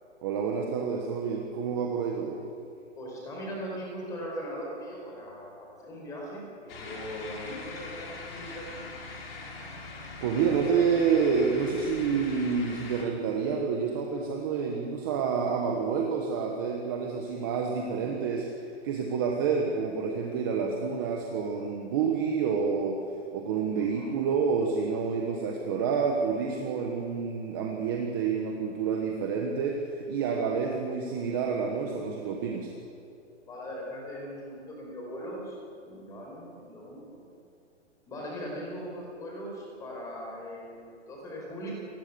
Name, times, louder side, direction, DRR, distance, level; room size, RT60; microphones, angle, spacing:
voice 1, 0.2-2.4 10.2-18.4 18.8-23.0 23.3-32.7, right 6 dB, 20° right, 1 dB, 1.3 m, -28 dB
voice 2, 2.9-8.8 18.0-18.1 23.8-24.1 33.5-37.3 38.1-41.7, equal, 10° left, -2 dB, 4.7 m, -40 dB
sound 1, 6.7-13.0, left 3 dB, 50° left, 5.2 m, -42 dB
28.5 x 20.0 x 6.9 m, 2.5 s
hypercardioid pair, 180°, 36 cm